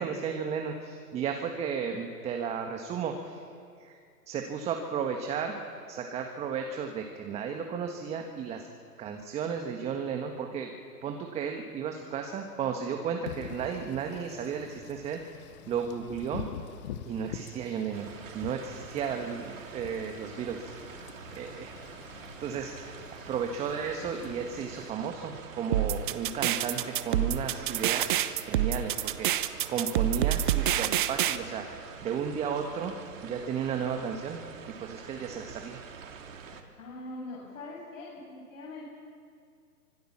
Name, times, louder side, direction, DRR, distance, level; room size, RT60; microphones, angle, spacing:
voice 1, 0.0-3.4 3.8-4.0 4.3-5.6 5.9-8.7 9.0-10.7 11.0-15.4 15.7-16.5 17.0-20.7 21.3-21.8 22.0-22.1 22.4-22.9 23.3-32.9 33.2-34.4 34.8-35.8, right 7 dB, 15° right, 4 dB, 1.5 m, -34 dB
Wind / Rain, 13.3-24.9, left 10 dB, 25° left, 1.1 m, -46 dB
sound 1, 17.9-36.6, right 6 dB, 55° right, 3.3 m, -46 dB
sound 2, 25.7-31.4, right 12 dB, 30° right, 1.0 m, -27 dB
voice 2, 36.8-38.8, left 2 dB, 55° left, -3 dB, 7.8 m, -42 dB
25.5 x 23.5 x 7.4 m, 2.2 s
figure-of-eight pair, 135°, 47 cm